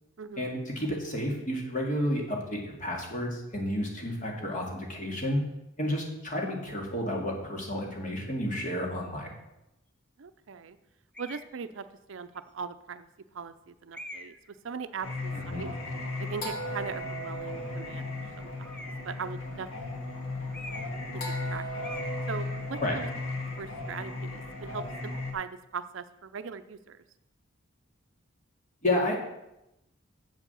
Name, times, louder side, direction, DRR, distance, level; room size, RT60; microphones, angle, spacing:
voice 1, 0.4-5.4 5.8-9.3 15.3-15.6 22.8-23.0 28.8-29.2, left 1 dB, 40° left, 0 dB, 2.2 m, -31 dB
voice 2, 10.2-10.8 11.2-13.1 13.3-14.3 14.6-15.7 16.2-19.7 21.5-21.6 22.3-23.1 23.6-27.0, right 6 dB, 65° right, 11 dB, 0.5 m, -40 dB
sound 1, 11.1-11.5 12.3-12.4 13.9-14.5 18.6-19.2 20.5-21.1 21.4-21.5 21.8-22.2, equal, 5° left, 0.6 m, -43 dB
Singing, 15.0-25.3, left 2 dB, 90° left, 2.0 m, -36 dB
7.7 x 7.3 x 6.9 m, 0.89 s
head